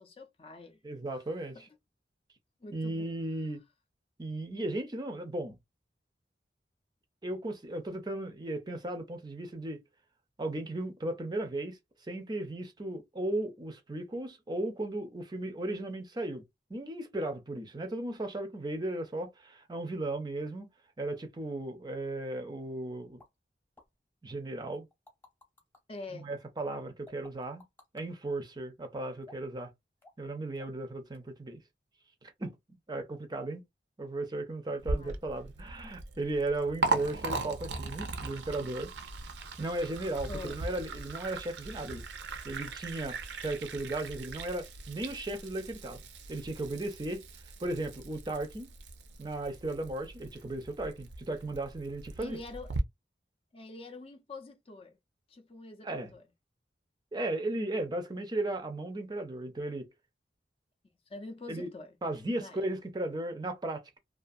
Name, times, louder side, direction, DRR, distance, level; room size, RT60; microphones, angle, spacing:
voice 1, 0.0-0.8 1.1-1.2 2.6-3.2 25.9-26.3 34.9-35.2 40.3-40.6 52.2-52.7 53.5-55.0 55.3-56.2 61.1-62.0 62.3-62.6, left 3 dB, 35° left, 0.5 m, -45 dB
voice 2, 0.8-1.6 2.7-3.6 4.2-5.6 7.2-9.8 10.4-11.8 12.1-16.4 16.7-20.7 21.0-23.2 24.2-24.9 26.1-27.6 27.9-29.7 30.2-31.6 32.4-32.6 32.9-33.6 34.0-38.9 39.6-42.0 42.4-46.0 46.3-47.2 47.6-48.7 49.2-52.4 55.8-56.1 57.1-59.9 61.5-61.7 62.0-64.0, right 2 dB, 25° right, 0.5 m, -36 dB
sound 1, 23.2-23.3 23.8-23.9 24.7-25.8 27.1-28.1 29.2-29.6 30.0-30.3 30.6-30.9 31.1-31.2, left 3 dB, 15° left, 0.9 m, -56 dB
Liquid, 34.8-52.8, right 3 dB, 80° right, 0.5 m, -39 dB
2.4 x 2.4 x 2.5 m
head